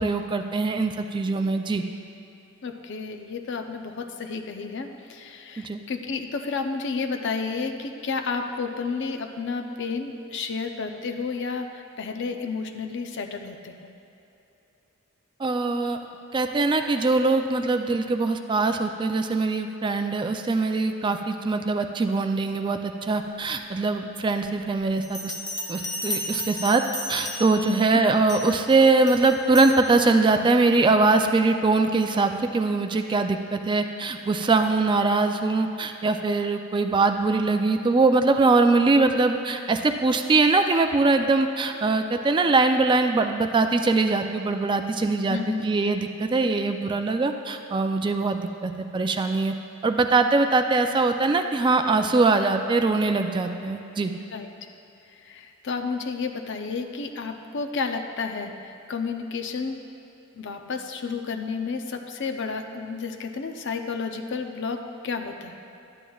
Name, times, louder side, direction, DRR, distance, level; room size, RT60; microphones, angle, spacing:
voice 1, 0.0-1.8 5.6-5.8 15.4-16.0 16.3-25.3 25.7-26.8 27.1-49.5 49.8-54.1, right 3 dB, 25° right, 6 dB, 0.3 m, -22 dB
voice 2, 2.6-13.8 27.6-28.0 45.3-45.6 54.3-54.5 55.2-59.8 60.3-65.6, left 4 dB, 60° left, 5 dB, 0.6 m, -31 dB
Bell, 25.0-27.7 28.3-28.6 29.1-29.8, left 1 dB, 20° left, 0.8 m, -33 dB
11.5 x 9.0 x 2.3 m, 2.9 s
head